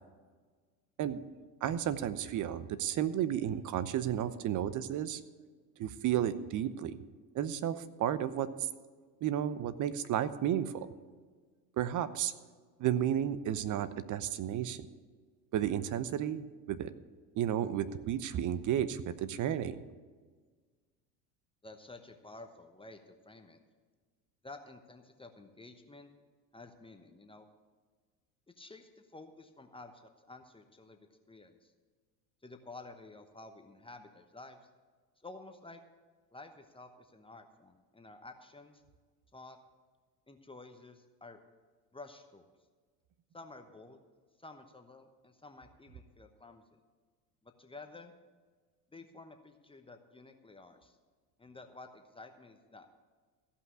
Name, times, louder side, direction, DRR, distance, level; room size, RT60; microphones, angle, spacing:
voice 1, 1.6-5.2 5.8-7.0 7.3-8.5 9.2-10.9 11.8-12.3 12.8-14.9 15.5-16.9 17.4-19.8, right 10 dB, 40° right, 14 dB, 0.8 m, -32 dB
voice 2, 21.6-23.6 24.4-26.1 26.5-27.5 28.5-31.0 31.3-31.7 32.4-34.6 35.2-35.8 36.3-38.8 39.3-39.6 40.3-41.4 41.9-42.4 43.3-44.0 44.4-46.8 47.4-48.1 48.9-51.0 51.4-52.9, left 2 dB, 10° left, 6 dB, 1.0 m, -52 dB
15.0 x 5.7 x 8.2 m, 1.5 s
hypercardioid pair, 80°, 49 cm